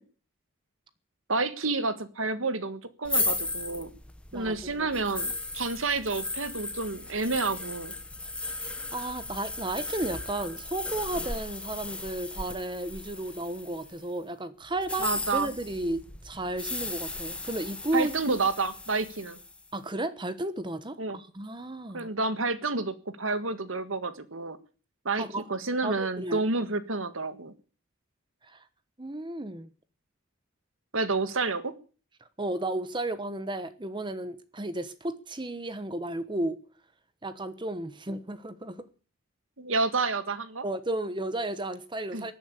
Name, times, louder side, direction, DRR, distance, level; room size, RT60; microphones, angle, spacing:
voice 1, 1.3-3.9 4.3-7.9 15.0-15.5 17.9-19.4 21.0-21.2 21.9-24.6 25.0-25.2 25.5-27.5 30.9-31.7 39.6-40.6 42.1-42.3, right 3 dB, 75° right, 1.6 m, -29 dB
sound 1, 3.0-14.0 14.8-19.6, left 2 dB, 5° left, 1.2 m, -36 dB
voice 2, 4.3-4.9 8.4-18.1 19.7-22.1 25.2-25.5 25.8-26.4 28.5-28.6 29.0-29.7 32.4-36.6 37.2-38.9 40.6-42.3, right 1 dB, 25° right, 1.1 m, -33 dB
17.0 x 9.4 x 8.4 m
head